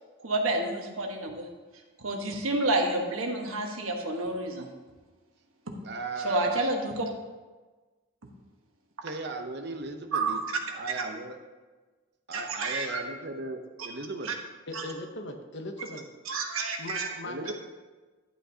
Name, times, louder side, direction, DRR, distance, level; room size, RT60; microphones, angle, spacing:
voice 1, 0.2-1.5 2.0-4.7 6.2-7.1 10.1-10.4 12.3-13.0 14.2-14.3 14.7-14.8 16.2-17.1, right 2 dB, 75° right, 1.3 m, -29 dB
voice 2, 5.8-6.6 9.0-10.4 10.7-11.4 12.3-14.3 17.2-17.5, right 2 dB, 50° right, 0.8 m, -37 dB
voice 3, 14.7-16.1 16.8-17.5, left 1 dB, 55° left, 0.8 m, -39 dB
11.5 x 8.2 x 2.8 m
head